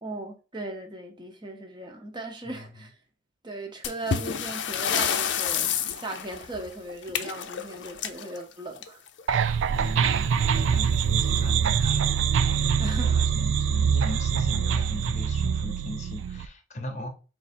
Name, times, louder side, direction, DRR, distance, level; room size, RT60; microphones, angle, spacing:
voice 1, 0.0-2.9 3.4-9.0 12.8-13.2, right 2 dB, 25° right, 0.8 m, -37 dB
sound 1, 3.8-9.2 10.5-10.6 10.9-11.0 11.7-11.8 12.5-12.7, left 8 dB, 70° left, 0.5 m, -30 dB
sound 2, 9.3-16.5, right 7 dB, 90° right, 0.3 m, -24 dB
voice 2, 9.7-12.1 12.8-17.1, left 1 dB, 40° left, 0.8 m, -37 dB
4.0 x 2.5 x 4.2 m
head